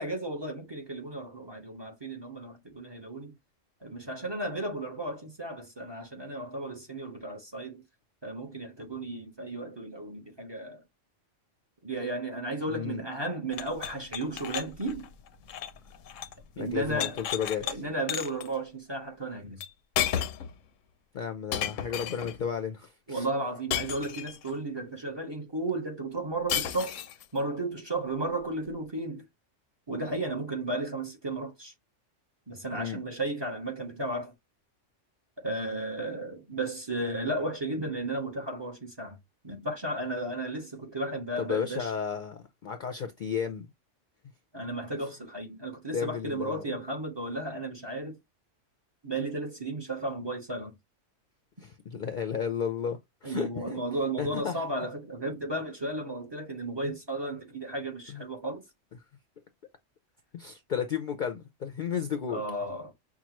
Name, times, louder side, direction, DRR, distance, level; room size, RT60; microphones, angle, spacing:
voice 1, 0.0-3.3 3.8-7.8 8.2-10.8 11.8-15.1 16.6-17.2 17.6-19.6 23.1-27.0 27.3-29.2 29.9-31.7 32.5-34.3 35.4-39.2 39.4-41.9 44.5-48.2 49.0-50.7 53.2-58.6 62.3-62.9, right 2 dB, 25° right, 0.9 m, -34 dB
voice 2, 12.7-13.0 16.6-17.8 21.1-23.3 32.7-33.0 41.4-43.7 45.9-46.6 51.6-53.8 54.2-54.7 58.1-58.2 60.3-62.4, left 7 dB, 55° left, 0.6 m, -33 dB
sound 1, 13.5-16.4 16.7-17.8 18.1-18.5 19.6-19.7 20.0-20.5 21.5-22.4 23.7-24.5 26.5-27.2, left 10 dB, 90° left, 1.0 m, -33 dB
5.9 x 2.2 x 2.9 m
omnidirectional pair, 1.3 m